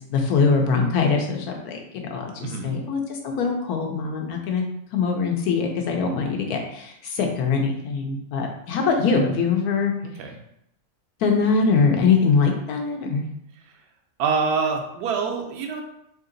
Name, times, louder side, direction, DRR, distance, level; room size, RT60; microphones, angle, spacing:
voice 1, 0.1-4.6 4.9-9.9 11.2-13.3, left 5 dB, 80° left, 2 dB, 1.2 m, -22 dB
voice 2, 2.4-2.7 10.0-10.4 14.2-15.8, right 5 dB, 85° right, 3 dB, 1.1 m, -26 dB
3.3 x 2.8 x 3.8 m, 0.77 s
omnidirectional pair, 1.6 m